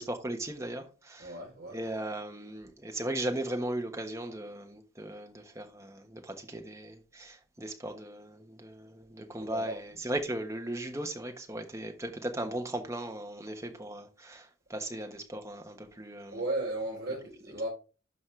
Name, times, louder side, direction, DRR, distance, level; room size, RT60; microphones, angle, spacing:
voice 1, 0.0-1.3 1.7-16.4, right 1 dB, 15° right, 1.2 m, -37 dB
voice 2, 1.2-1.8 9.4-10.0 16.3-17.7, right 2 dB, 45° right, 3.7 m, -35 dB
12.0 x 4.2 x 3.2 m
head